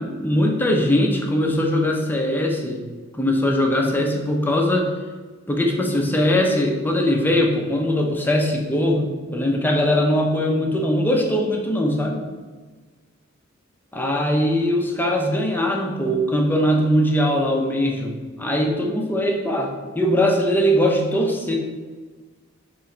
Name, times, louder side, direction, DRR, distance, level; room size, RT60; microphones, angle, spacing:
voice 1, 0.0-2.8 3.2-4.9 5.5-12.2 13.9-21.6, left 1 dB, 10° left, 1 dB, 0.7 m, -21 dB
7.3 x 3.1 x 4.4 m, 1.4 s
head